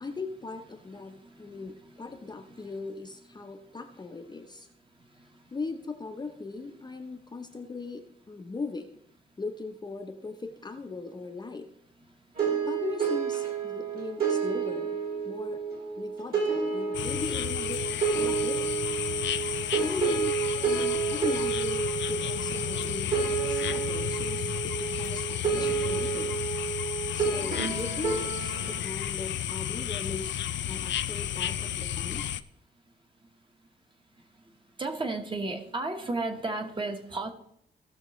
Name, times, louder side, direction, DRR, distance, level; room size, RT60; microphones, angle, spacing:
voice 1, 0.0-4.7 5.5-9.0 9.4-11.7 12.7-15.6 16.0-17.8 18.2-18.7 19.8-26.4 27.1-32.3, left 3 dB, 20° left, 4 dB, 0.7 m, -39 dB
sound 1, 12.4-28.8, right 6 dB, 50° right, 2.8 m, -30 dB
sound 2, 16.9-32.4, left 11 dB, 75° left, 0.5 m, -32 dB
voice 2, 34.8-37.3, right 2 dB, 25° right, 4 dB, 1.1 m, -32 dB
16.0 x 6.7 x 3.1 m, 0.72 s
wide cardioid pair, 175°, 19 cm